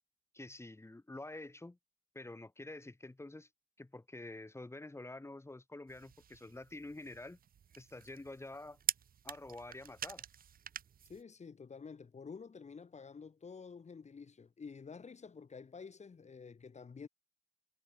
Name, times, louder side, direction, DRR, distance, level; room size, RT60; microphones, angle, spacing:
voice 1, 0.3-1.8 2.1-3.5 3.8-7.4 7.8-8.8 9.2-10.2, left 2 dB, 20° left, 7.9 m, -48 dB
sound 1, 5.9-11.2, right 8 dB, 90° right, 1.1 m, -45 dB
voice 2, 11.1-17.1, left 5 dB, 50° left, 3.7 m, -50 dB
wide cardioid pair, 125°, 14 cm